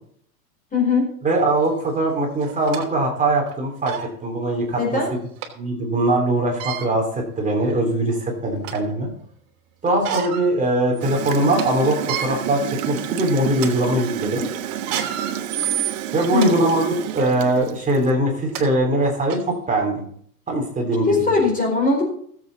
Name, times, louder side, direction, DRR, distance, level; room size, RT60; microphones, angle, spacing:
voice 1, 0.7-1.1 4.8-5.1 16.3-16.6 21.1-22.1, left 4 dB, 20° left, 0 dB, 4.6 m, -20 dB
voice 2, 1.2-3.9 4.2-5.0 5.6-9.1 9.8-14.5 16.1-20.0 20.5-21.3, right 1 dB, 15° right, 1 dB, 3.5 m, -21 dB
sound 1, 1.7-1.8 2.4-2.9 3.5-3.6 3.8-4.1 5.4-5.5 6.4-6.9 7.6-7.7 8.2-8.9 9.9-10.5 10.9-11.0 11.4-11.6 12.0-12.3 12.9-13.1 13.5-13.7 14.7-16.5 17.1-17.3 18.2-18.3 18.5-18.6 19.3-19.4, right 10 dB, 40° right, 3.1 m, -29 dB
Gurgling / Toilet flush, 11.0-18.1, right 10 dB, 60° right, 1.3 m, -30 dB
19.5 x 7.9 x 4.1 m, 0.63 s
hypercardioid pair, 120°, 47 cm